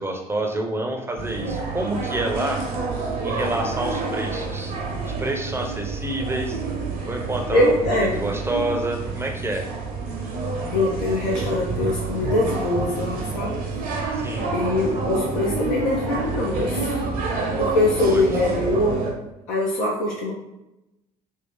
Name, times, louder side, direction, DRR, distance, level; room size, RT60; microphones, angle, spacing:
voice 1, 0.0-2.6 3.2-4.7 5.2-6.6 7.0-9.6 14.1-14.5 18.0-18.2, right 1 dB, 10° right, 2 dB, 0.6 m, -28 dB
sound 1, 1.2-19.1, right 3 dB, 45° right, 0.8 m, -28 dB
voice 2, 4.7-5.2 7.5-8.2 10.7-13.6 14.5-16.9 17.6-19.1 19.5-20.3, left 2 dB, 65° left, -4 dB, 0.6 m, -23 dB
2.8 x 2.7 x 3.4 m, 0.93 s
figure-of-eight pair, 55°, 20 cm